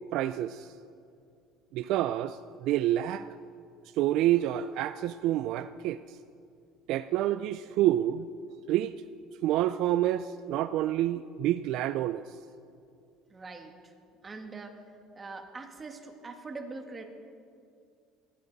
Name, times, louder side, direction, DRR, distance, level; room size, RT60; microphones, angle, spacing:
voice 1, 0.1-0.7 1.7-3.3 3.8-6.2 6.9-8.3 8.7-9.0 9.4-12.3, right 13 dB, 65° right, 13 dB, 0.4 m, -28 dB
voice 2, 13.3-13.9 14.2-14.8 15.1-17.0, right 3 dB, 20° right, 4 dB, 1.7 m, -43 dB
20.5 x 16.0 x 4.1 m, 2.4 s
cardioid pair, 145°, 0 cm